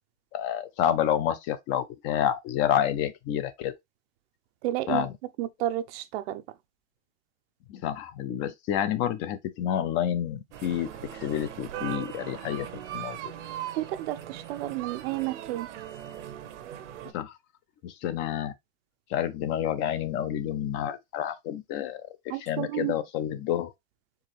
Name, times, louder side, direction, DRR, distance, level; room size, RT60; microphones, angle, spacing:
voice 1, 0.3-3.7 4.9-5.1 7.7-10.9 11.2-12.7 12.9-13.2 17.1-17.3 17.8-18.5 19.1-22.1 22.4-23.7, left 10 dB, 35° left, 0.5 m, -29 dB
voice 2, 4.6-5.1 5.4-6.4 13.8-15.7 22.3-23.0, right 14 dB, 55° right, 0.6 m, -31 dB
sound 1, 10.5-17.1, right 11 dB, 75° right, 1.0 m, -39 dB
4.7 x 3.2 x 3.1 m
supercardioid pair, 160°, 36 cm